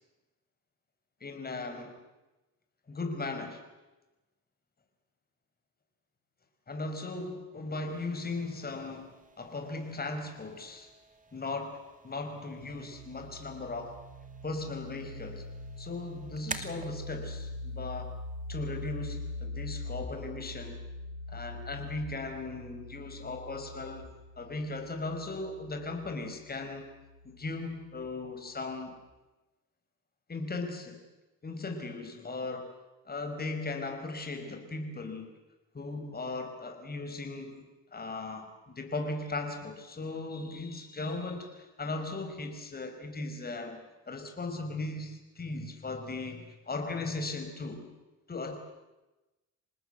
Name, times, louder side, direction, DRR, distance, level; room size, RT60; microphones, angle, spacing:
voice 1, 1.2-2.0 2.9-3.6 6.7-10.9 11.3-14.0 14.4-15.5 15.8-18.2 18.5-20.8 21.3-26.9 27.2-29.0 30.3-31.1 31.4-32.8 33.1-35.3 35.7-47.9 48.3-48.6, left 3 dB, 30° left, 5.5 m, -38 dB
Cassette Tape Motor, 7.9-19.5, right 3 dB, 25° right, 2.7 m, -50 dB
sound 1, 12.6-28.0, left 2 dB, 85° right, 6.5 m, -43 dB
27.0 x 19.0 x 8.3 m
cardioid pair, 90°, 30 cm